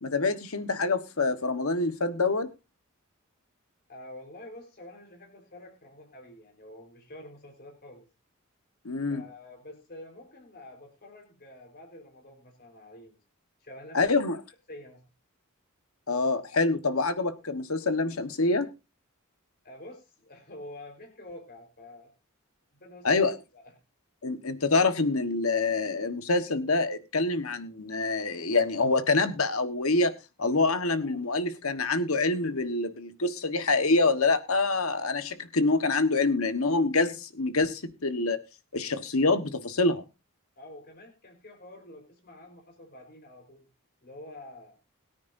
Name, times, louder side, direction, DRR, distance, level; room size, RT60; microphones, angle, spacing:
voice 1, 0.0-2.5 8.8-9.2 13.9-14.4 16.1-18.7 23.0-23.3 24.2-30.1 30.4-38.4 38.7-40.0, left 3 dB, 80° left, 10 dB, 1.4 m, -26 dB
voice 2, 3.9-8.1 9.1-13.2 13.6-14.1 14.7-15.0 19.6-22.1 22.8-23.6 31.0-31.2 40.6-43.6 44.0-44.7, left 1 dB, 50° left, 2 dB, 4.3 m, -47 dB
21.5 x 9.7 x 2.7 m, 0.28 s
head